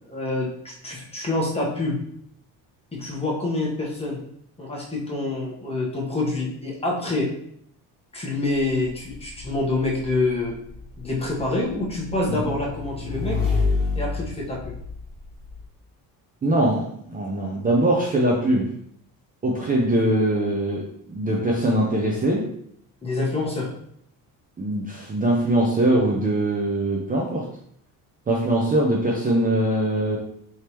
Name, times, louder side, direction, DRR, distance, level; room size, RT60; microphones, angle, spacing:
voice 1, 0.1-2.0 2.9-4.2 4.6-7.3 8.1-10.6 11.0-13.4 13.9-14.8 23.0-23.7, left 2 dB, 15° left, -3 dB, 1.2 m, -26 dB
Motorcycle / Engine, 9.0-15.6, left 4 dB, ahead, 1.5 m, -29 dB
voice 2, 16.4-18.7 19.4-22.5 24.6-27.5 28.3-30.2, right 1 dB, 25° right, -2 dB, 0.6 m, -22 dB
4.8 x 3.4 x 3.0 m, 0.71 s
cardioid pair, 135°, 37 cm